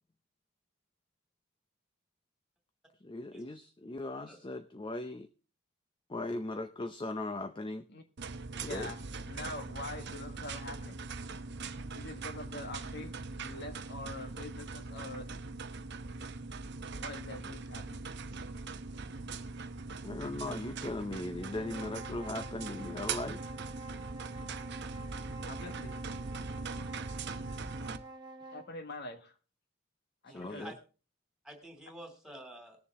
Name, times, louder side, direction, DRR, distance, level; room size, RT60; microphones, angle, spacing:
voice 1, 3.0-5.3 6.1-7.9 8.5-8.9 20.0-23.4 30.3-30.7, left 2 dB, 25° left, 8 dB, 0.6 m, -38 dB
sound 1, 8.2-28.0, right 4 dB, 55° right, 0.8 m, -41 dB
voice 2, 8.6-9.0 9.3-11.0 11.9-15.3 17.0-18.0 25.4-25.9 28.5-29.3 30.2-30.7, left 2 dB, 50° left, 6 dB, 1.6 m, -44 dB
sound 2, 21.3-28.7, right 2 dB, 20° right, 1.2 m, -48 dB
voice 3, 30.3-30.7 31.4-32.8, right 1 dB, 5° right, 3 dB, 2.8 m, -48 dB
20.0 x 7.1 x 3.7 m, 0.34 s
head